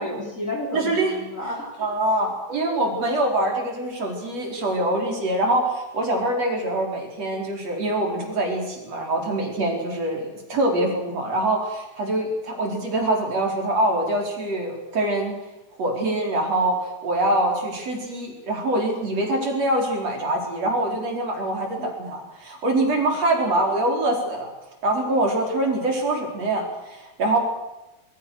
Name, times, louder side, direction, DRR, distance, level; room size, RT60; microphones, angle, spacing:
voice 1, 0.0-1.7 2.5-2.6 21.8-21.9 23.4-23.5, left 1 dB, 25° left, 1 dB, 4.8 m, -31 dB
voice 2, 0.7-1.1 1.8-15.4 15.8-24.5 24.8-27.4, right 1 dB, 60° right, 1 dB, 5.9 m, -24 dB
25.5 x 23.0 x 6.6 m, 1.0 s
omnidirectional pair, 3.4 m